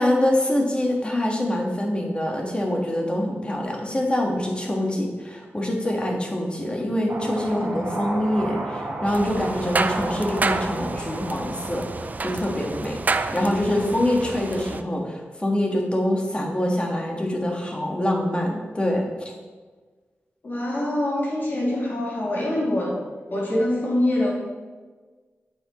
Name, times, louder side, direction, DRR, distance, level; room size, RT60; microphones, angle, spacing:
voice 1, 0.0-11.8 12.2-19.3, left 1 dB, 25° left, 0 dB, 1.6 m, -25 dB
sound 1, 7.1-13.6, right 2 dB, 60° right, 1.5 m, -34 dB
sound 2, 9.1-14.8, right 3 dB, 40° right, 0.4 m, -29 dB
voice 2, 20.4-23.0 23.3-24.3, left 1 dB, 50° left, -5 dB, 2.7 m, -24 dB
8.8 x 7.2 x 3.1 m, 1.4 s
wide cardioid pair, 85°, 4 cm